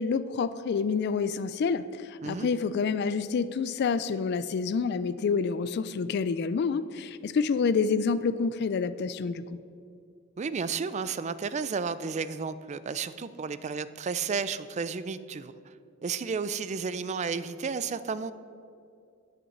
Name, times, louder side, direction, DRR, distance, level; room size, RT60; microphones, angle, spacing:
voice 1, 0.0-9.6, left 5 dB, 55° left, 13 dB, 0.3 m, -28 dB
voice 2, 10.4-15.5 16.0-18.3, right 5 dB, 35° right, 15 dB, 0.4 m, -32 dB
8.7 x 6.1 x 7.8 m, 2.4 s
head